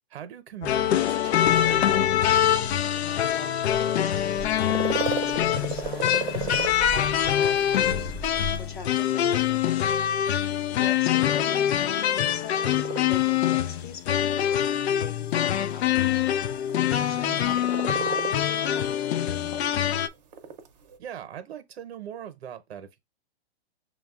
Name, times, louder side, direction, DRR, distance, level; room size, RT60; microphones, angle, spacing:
voice 1, 0.1-2.2 10.8-11.0 17.0-17.4 21.0-23.0, right 9 dB, 70° right, 0.8 m, -41 dB
sound 1, 0.6-20.1, left 10 dB, 80° left, 0.5 m, -24 dB
Car / Engine, 2.1-8.8, right 1 dB, 15° left, 0.5 m, -42 dB
voice 2, 2.9-10.4 10.7-16.2 17.0-19.9, left 5 dB, 50° left, 0.8 m, -43 dB
sound 2, 4.3-21.0, right 7 dB, 40° right, 0.6 m, -37 dB
6.1 x 2.3 x 2.3 m
hypercardioid pair, 175°, 32 cm